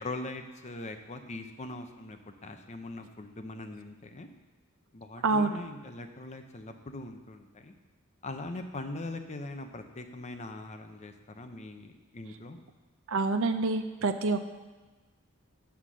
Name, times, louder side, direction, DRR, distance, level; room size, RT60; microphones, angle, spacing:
voice 1, 0.0-4.3 4.9-7.7 8.2-12.6, left 2 dB, 35° left, 6 dB, 0.7 m, -41 dB
voice 2, 5.2-5.6 13.1-14.5, right 3 dB, 65° right, 8 dB, 0.5 m, -27 dB
8.3 x 5.9 x 6.1 m, 1.3 s
head